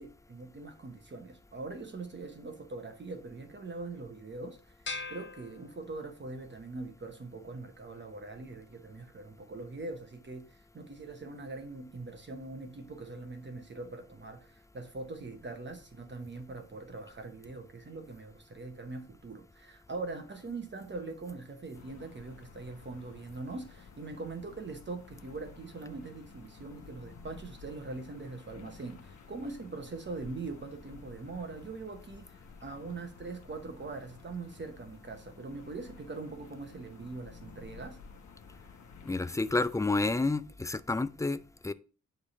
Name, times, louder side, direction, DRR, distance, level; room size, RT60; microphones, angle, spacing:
voice 1, 0.0-4.7 5.1-38.0, right 3 dB, 40° right, 0.9 m, -42 dB
sound 1, 4.8-6.3, left 3 dB, 40° left, 0.8 m, -42 dB
sound 2, 21.7-40.3, left 5 dB, 80° left, 1.0 m, -53 dB
voice 2, 39.1-41.7, left 3 dB, 10° left, 0.3 m, -30 dB
9.5 x 3.3 x 4.1 m
wide cardioid pair, 115°, 29 cm